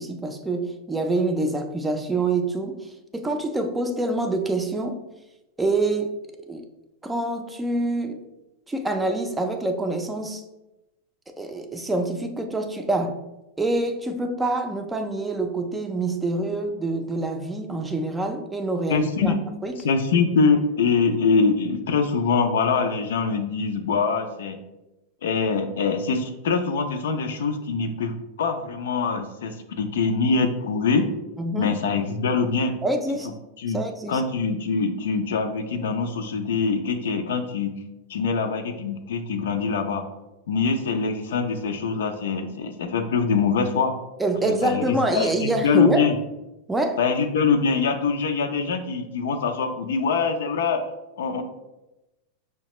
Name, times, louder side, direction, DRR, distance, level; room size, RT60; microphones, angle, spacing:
voice 1, 0.0-5.0 5.6-6.2 6.5-6.7 7.0-8.2 8.7-10.4 11.4-13.2 13.6-19.3 19.6-19.9 31.4-31.8 32.8-33.3 33.7-34.2 44.2-46.1 46.7-47.0, right 2 dB, 10° right, 5 dB, 0.4 m, -26 dB
voice 2, 18.9-19.4 19.8-24.6 25.2-31.1 31.6-32.8 33.6-33.8 34.1-37.7 38.1-40.1 40.5-44.0 44.6-46.1 47.0-50.8 51.2-51.4, left 5 dB, 90° left, 6 dB, 0.5 m, -23 dB
5.5 x 2.2 x 3.0 m, 0.97 s
supercardioid pair, 135°, 0 cm